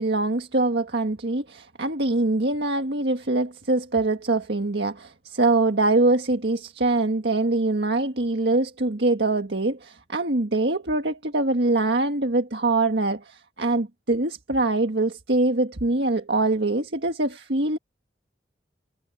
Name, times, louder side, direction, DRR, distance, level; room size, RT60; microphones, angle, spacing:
voice 1, 0.0-17.8, right 2 dB, 75° right, 1.7 m, -23 dB
head